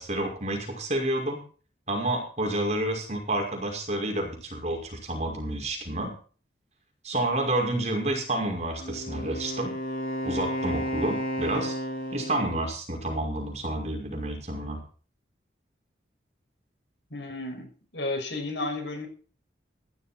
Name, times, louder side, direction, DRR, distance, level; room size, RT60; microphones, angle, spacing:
voice 1, 0.0-1.4 1.9-6.1 7.0-9.7 10.2-11.8 12.1-14.8, right 1 dB, 40° right, 1 dB, 5.6 m, -29 dB
Wind instrument woodwind instrument, 8.8-12.6, equal, 50° left, 4.5 m, -32 dB
voice 2, 17.1-19.1, left 2 dB, 85° left, 4 dB, 6.2 m, -33 dB
15.5 x 12.5 x 4.4 m, 0.40 s
head